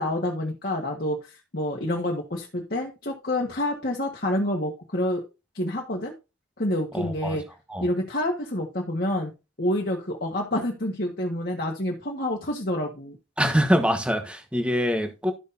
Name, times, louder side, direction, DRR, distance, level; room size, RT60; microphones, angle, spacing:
voice 1, 0.0-5.2 5.5-6.1 6.6-7.4 7.8-9.3 9.6-13.2, left 1 dB, 50° left, -1 dB, 1.6 m, -28 dB
voice 2, 6.9-7.4 7.7-7.9 13.4-15.3, equal, 5° right, 6 dB, 1.2 m, -24 dB
12.5 x 6.4 x 2.7 m, 0.27 s
head